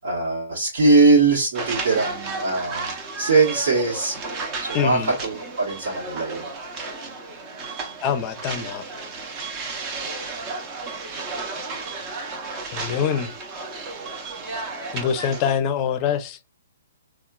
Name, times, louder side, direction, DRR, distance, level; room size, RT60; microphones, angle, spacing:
voice 1, 0.0-4.2 4.6-6.4, right 3 dB, 65° right, 1.2 m, -21 dB
sound 1, 1.5-15.5, right 3 dB, 30° right, 0.7 m, -33 dB
voice 2, 4.7-5.1 8.0-8.8 12.7-13.3 14.9-16.4, left 7 dB, 30° left, 0.5 m, -24 dB
3.6 x 2.4 x 2.2 m
hypercardioid pair, 135°, 0 cm